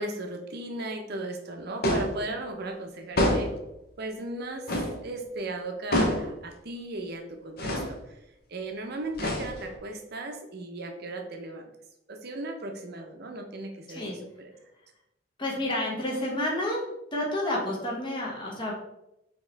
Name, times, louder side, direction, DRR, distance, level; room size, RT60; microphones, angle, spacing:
voice 1, 0.0-3.5 4.0-4.7 5.0-8.2 8.5-11.7 12.1-14.0 14.4-14.5, right 2 dB, 50° right, 4 dB, 0.6 m, -36 dB
sound 1, 1.8-2.2 3.2-3.6 4.7-5.0 5.9-6.3 7.6-7.9 9.1-9.8, left 1 dB, 50° left, 0.8 m, -26 dB
voice 2, 15.4-16.8 17.1-18.7, left 1 dB, 25° left, -3 dB, 1.0 m, -30 dB
4.5 x 3.0 x 3.3 m, 0.86 s
head